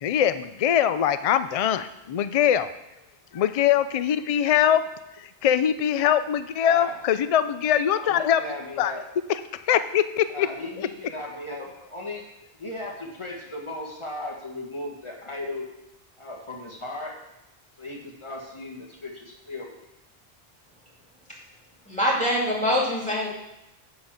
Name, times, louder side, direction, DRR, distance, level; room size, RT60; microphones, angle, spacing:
voice 1, 0.0-2.7 3.3-4.8 5.2-8.5 8.8-8.9 9.3-10.5 10.8-10.9, left 10 dB, 55° left, 12 dB, 0.4 m, -22 dB
voice 2, 6.6-7.0 7.9-9.0 10.3-12.2 12.5-15.7 16.2-17.2 17.8-19.8, left 2 dB, 30° left, 0 dB, 1.6 m, -36 dB
voice 3, 21.9-23.3, equal, 5° left, -5 dB, 2.4 m, -24 dB
10.5 x 4.0 x 7.3 m, 0.94 s
omnidirectional pair, 1.1 m